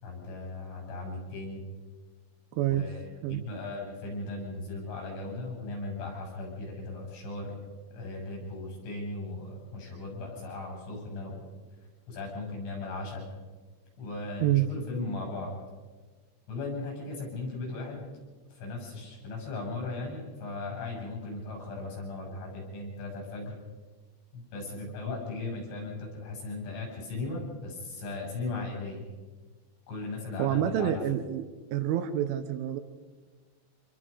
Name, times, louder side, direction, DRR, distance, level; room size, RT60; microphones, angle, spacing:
voice 1, 0.0-1.6 2.7-7.5 7.9-11.4 12.1-13.2 14.0-15.5 16.5-18.0 18.5-23.5 24.3-29.0 29.9-30.9, left 2 dB, 90° left, 0 dB, 9.4 m, -37 dB
voice 2, 2.6-2.9 3.2-3.4 14.4-14.7 30.4-31.4 31.7-32.8, right 12 dB, 90° right, 9 dB, 3.5 m, -27 dB
26.5 x 21.5 x 5.1 m, 1.3 s
omnidirectional pair, 5.4 m